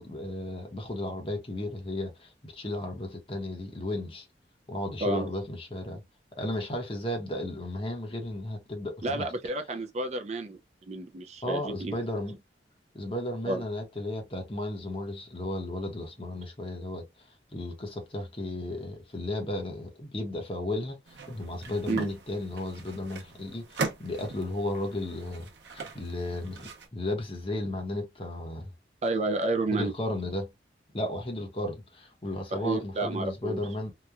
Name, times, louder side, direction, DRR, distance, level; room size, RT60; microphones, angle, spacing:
voice 1, 0.0-4.3 4.7-6.0 6.4-9.3 11.4-12.4 12.9-28.7 29.7-30.5 30.9-33.9, left 1 dB, 30° left, 0.9 m, -34 dB
voice 2, 9.0-10.6 10.9-12.0 13.5-13.6 21.9-22.1 29.0-29.9 32.5-33.6, right 2 dB, 40° right, 0.4 m, -30 dB
sound 1, 21.1-26.9, right 3 dB, 80° right, 0.7 m, -40 dB
2.9 x 2.2 x 2.3 m
head